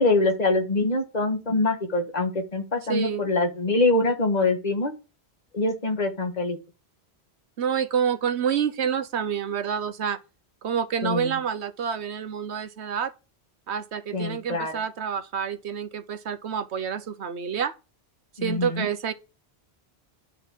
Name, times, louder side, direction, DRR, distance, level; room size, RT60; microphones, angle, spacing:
voice 1, 0.0-4.9 5.5-6.6 11.0-11.4 14.1-14.7 18.4-18.9, left 2 dB, 40° left, 1.6 m, -24 dB
voice 2, 2.9-3.2 7.6-10.2 10.6-13.1 13.7-17.7 18.4-19.1, right 7 dB, 85° right, 1.2 m, -28 dB
10.0 x 4.5 x 7.4 m
omnidirectional pair, 1.1 m